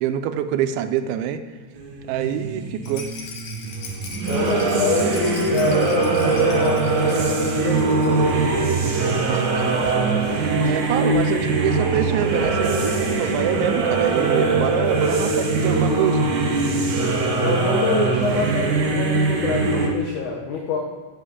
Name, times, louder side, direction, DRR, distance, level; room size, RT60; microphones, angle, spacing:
voice 1, 0.0-1.4 2.1-3.1 9.0-10.1 10.7-16.3, right 9 dB, 90° right, 9 dB, 3.1 m, -26 dB
sound 1, 1.8-19.9, right 3 dB, 60° right, 2.4 m, -22 dB
Rattle, 2.8-8.5 8.8-8.9 9.1-9.2, left 4 dB, 60° left, 2.1 m, -39 dB
voice 2, 4.3-8.4 17.4-20.8, left 5 dB, 85° left, 0 dB, 1.7 m, -26 dB
sound 2, 8.3-13.5, equal, 35° right, 1.5 m, -38 dB
8.7 x 7.8 x 8.2 m, 1.3 s
omnidirectional pair, 5.2 m